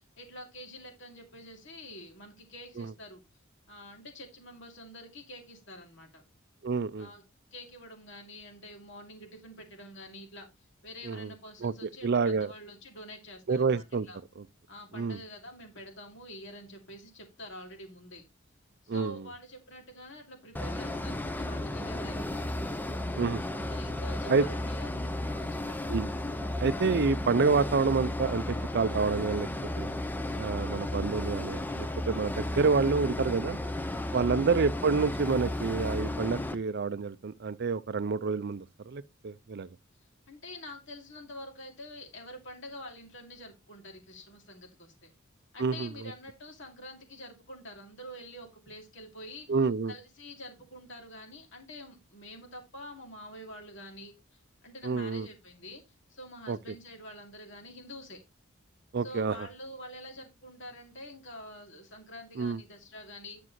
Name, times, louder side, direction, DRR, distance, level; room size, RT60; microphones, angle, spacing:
voice 1, 0.0-3.2 3.7-6.2 7.0-7.2 7.5-10.5 10.8-14.2 14.7-18.2 18.8-22.6 23.5-25.9 34.1-34.4 40.3-45.1 45.5-49.5 49.9-55.8 56.1-58.2 59.0-63.4, left 1 dB, 60° left, 2.7 m, -47 dB
voice 2, 6.6-7.1 11.0-11.3 11.6-11.7 12.0-12.5 13.5-14.1 14.9-15.2 18.9-19.2 23.2-23.4 24.3-24.5 25.9-26.1 26.6-29.5 29.8-29.9 30.4-33.6 34.1-39.7 45.6-45.9 49.5-49.9 54.8-55.3 56.5-56.6 58.9-59.5 62.4-62.6, right 4 dB, 50° right, 0.4 m, -28 dB
sound 1, 20.5-36.5, left 1 dB, 10° left, 0.5 m, -34 dB
9.9 x 6.0 x 3.1 m
head